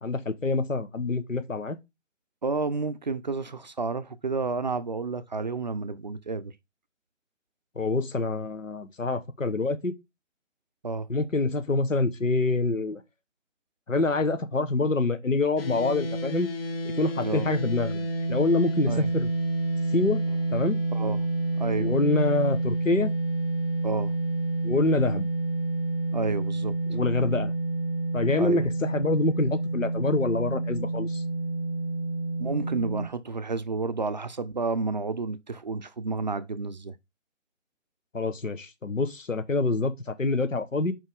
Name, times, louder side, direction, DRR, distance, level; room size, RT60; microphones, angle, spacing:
voice 1, 0.0-1.8 7.7-9.9 11.1-13.0 13.9-16.5 17.0-19.3 19.9-20.2 20.5-20.8 21.8-23.1 24.6-25.3 26.9-27.5 28.1-31.2 38.1-40.9, left 3 dB, 90° left, 1.3 m, -26 dB
voice 2, 2.4-6.5 10.8-11.1 17.2-17.5 18.9-19.1 20.9-21.3 21.6-21.9 23.8-24.1 26.1-26.8 28.4-28.6 32.4-37.0, right 4 dB, 35° right, 0.5 m, -30 dB
sound 1, 15.6-33.1, right 2 dB, 50° left, 1.2 m, -29 dB
5.7 x 5.2 x 3.7 m
figure-of-eight pair, 150°, 38 cm